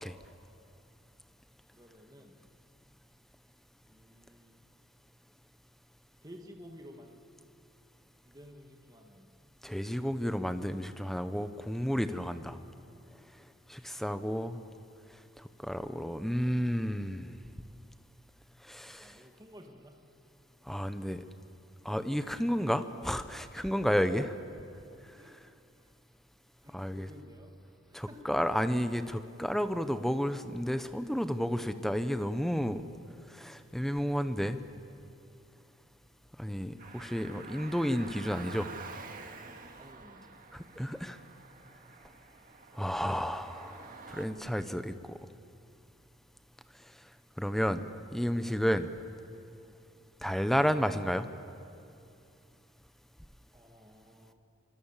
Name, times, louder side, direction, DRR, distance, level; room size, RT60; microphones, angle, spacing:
voice 1, 1.7-2.4 3.9-4.6 6.2-7.2 8.3-9.3 19.0-20.0 23.5-24.2 25.2-25.4 25.7-25.9 26.6-28.2 39.8-40.3 53.5-54.3, equal, 20° right, 2 dB, 1.9 m, -53 dB
voice 2, 9.6-12.6 13.7-14.6 15.4-17.4 18.6-19.1 20.7-21.2 21.8-24.2 26.7-27.1 27.9-32.8 33.3-34.6 36.4-38.7 40.5-41.2 42.7-45.2 47.4-48.9 50.2-51.3, equal, ahead, 10 dB, 0.9 m, -31 dB
Car, 36.8-44.3, right 4 dB, 40° right, 1.9 m, -49 dB
25.5 x 25.0 x 7.4 m, 2.5 s
head